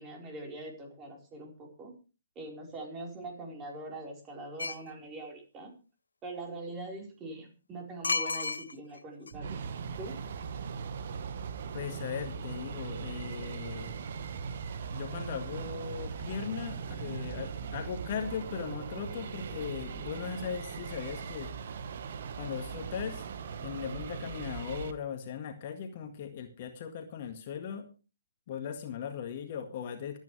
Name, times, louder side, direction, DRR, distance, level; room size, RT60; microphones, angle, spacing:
voice 1, 0.0-1.9 2.4-5.7 6.2-9.6 10.0-10.1, right 2 dB, 20° right, 1 dB, 4.5 m, -43 dB
sound 1, 4.6-4.9 8.0-9.0 9.3-9.4, left 4 dB, 70° left, 0.7 m, -31 dB
sound 2, 9.3-24.9, right 6 dB, 50° right, 1.4 m, -39 dB
voice 2, 11.7-13.9 14.9-21.5 22.4-23.2 23.6-27.9 28.5-30.2, left 7 dB, 40° left, 6 dB, 1.8 m, -38 dB
24.5 x 9.2 x 3.3 m, 0.34 s
figure-of-eight pair, 130°, 0 cm